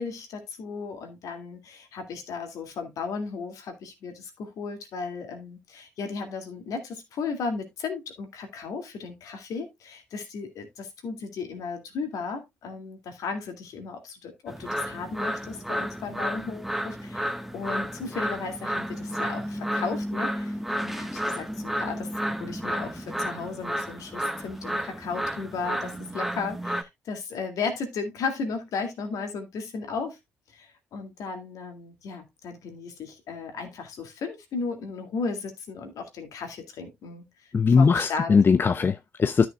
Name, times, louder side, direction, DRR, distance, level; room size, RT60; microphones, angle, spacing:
voice 1, 0.0-20.6 20.8-22.1 22.4-30.2 30.5-37.3 37.8-38.4, left 4 dB, 65° left, 2.2 m, -35 dB
sound 1, 14.5-26.8, equal, 5° right, 1.2 m, -32 dB
voice 2, 37.5-39.5, left 5 dB, 35° left, 0.5 m, -20 dB
13.0 x 6.2 x 2.2 m
hypercardioid pair, 45°, 6 cm